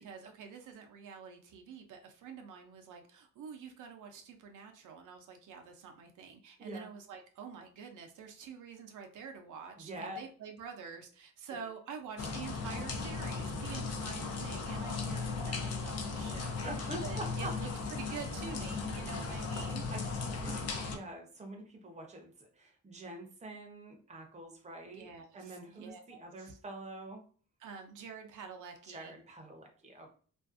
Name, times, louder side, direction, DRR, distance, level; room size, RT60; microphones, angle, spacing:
voice 1, 0.0-16.6 17.0-19.9 24.9-26.6 27.6-29.2, right 6 dB, 75° right, 3 dB, 0.5 m, -47 dB
voice 2, 9.8-10.2 11.5-11.6 16.6-17.5 18.1-18.2 19.9-27.2 28.8-30.1, right 1 dB, 20° right, 3 dB, 0.6 m, -46 dB
sound 1, 12.2-21.0, left 4 dB, 55° left, 0.5 m, -37 dB
2.5 x 2.3 x 2.4 m, 0.43 s
cardioid pair, 100°, 31 cm